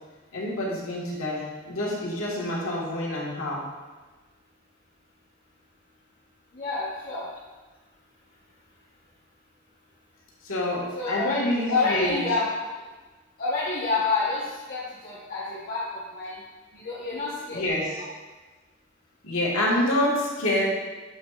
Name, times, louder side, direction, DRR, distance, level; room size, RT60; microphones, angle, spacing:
voice 1, 0.3-3.6 10.4-12.2 17.5-18.0 19.2-20.7, left 1 dB, 85° left, -4 dB, 1.6 m, -27 dB
voice 2, 6.5-7.2 10.9-12.5 13.4-14.4 14.7-15.8 16.1-16.4 16.7-17.6, left 3 dB, 45° left, -8 dB, 1.1 m, -28 dB
7.2 x 5.7 x 2.4 m, 1.3 s
head